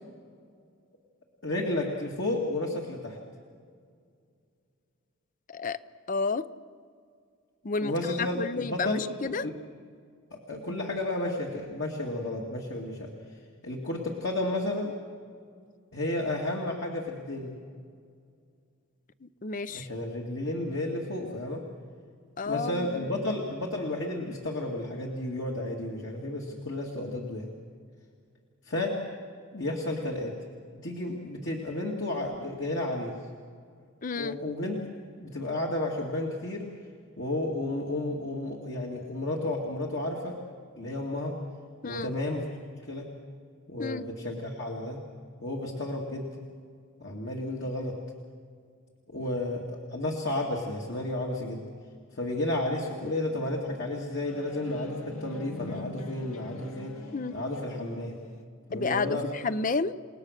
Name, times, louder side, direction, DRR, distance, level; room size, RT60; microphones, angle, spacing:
voice 1, 1.4-3.2 7.8-9.6 10.3-13.1 13.6-14.9 15.9-17.5 19.7-21.6 22.5-27.5 28.7-29.0 29.5-30.4 30.8-33.1 34.2-34.8 35.2-36.7 37.2-40.4 40.8-41.4 41.8-42.6 42.9-43.1 43.7-45.0 45.4-46.3 47.0-47.9 49.1-51.6 52.2-56.9 57.3-58.2 58.7-59.2, left 1 dB, 55° left, -1 dB, 2.2 m, -32 dB
voice 2, 6.1-6.5 7.6-9.5 19.4-19.9 22.4-23.1 34.0-34.4 41.8-42.1 43.8-44.1 57.1-57.3 58.7-59.9, left 4 dB, 40° left, 14 dB, 0.5 m, -31 dB
sound 1, 53.3-58.4, left 2 dB, 85° left, 1.9 m, -43 dB
30.0 x 18.5 x 6.5 m, 2.2 s
head